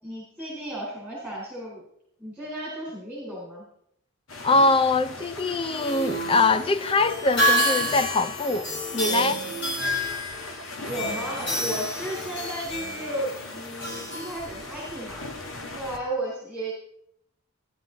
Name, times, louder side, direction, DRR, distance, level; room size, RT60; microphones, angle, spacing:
voice 1, 0.0-1.8 2.2-3.6 9.2-9.3 10.9-15.2 15.7-16.7, right 1 dB, ahead, 3.8 m, -34 dB
sound 1, 4.3-16.0, left 2 dB, 75° left, 1.6 m, -39 dB
voice 2, 4.4-9.4, left 3 dB, 25° left, 0.4 m, -23 dB
sound 2, 5.4-15.0, equal, 55° left, 3.1 m, -29 dB
16.0 x 10.5 x 3.9 m
head